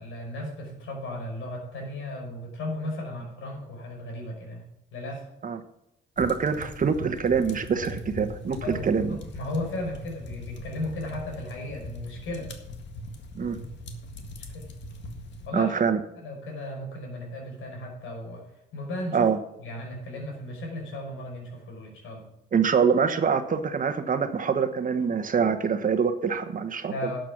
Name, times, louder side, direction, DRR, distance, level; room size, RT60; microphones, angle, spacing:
voice 1, 0.0-4.6 4.9-5.3 8.6-12.5 14.5-14.7 15.5-15.7 16.2-18.4 18.7-19.3 19.6-22.3 26.9-27.2, left 1 dB, 80° left, 0 dB, 5.5 m, -35 dB
sound 1, 6.2-15.5, left 1 dB, 65° left, 1.9 m, -40 dB
voice 2, 6.2-9.1 13.3-13.6 15.5-16.0 19.1-19.4 22.5-26.9, right 6 dB, 45° right, 9 dB, 1.3 m, -25 dB
11.5 x 7.8 x 6.1 m, 0.84 s
cardioid pair, 90°, 20 cm